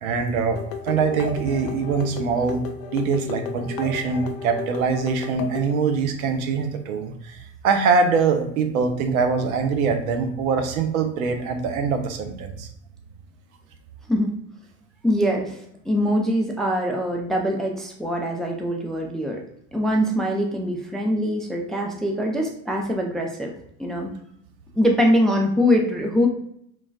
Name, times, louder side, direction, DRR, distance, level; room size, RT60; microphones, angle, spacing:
voice 1, 0.0-2.7 2.9-12.7, right 5 dB, 85° right, 6 dB, 0.5 m, -23 dB
sound 1, 0.6-5.7, left 6 dB, 70° left, 0.5 m, -34 dB
voice 2, 15.0-15.6 15.8-19.4 19.7-23.5 23.8-24.1 24.8-26.3, equal, ahead, 1 dB, 0.4 m, -23 dB
3.0 x 2.2 x 2.5 m, 0.71 s
hypercardioid pair, 65°, 41 cm